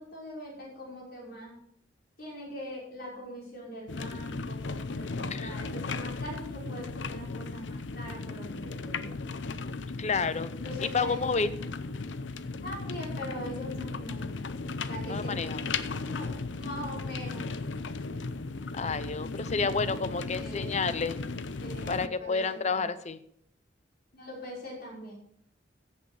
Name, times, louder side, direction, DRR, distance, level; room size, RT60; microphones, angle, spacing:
voice 1, 0.0-1.6 2.2-9.1 10.6-11.3 12.6-14.4 14.9-15.3 15.9-17.4 19.6-20.9 21.6-22.9 24.1-25.1, equal, 55° left, -3 dB, 5.7 m, -42 dB
sound 1, 3.9-22.1, left 3 dB, 90° left, 0.7 m, -36 dB
voice 2, 10.0-10.5 10.8-11.5 15.1-15.6 18.7-21.2 21.9-23.2, left 4 dB, 40° left, 14 dB, 0.7 m, -30 dB
15.0 x 8.3 x 4.9 m, 0.66 s
head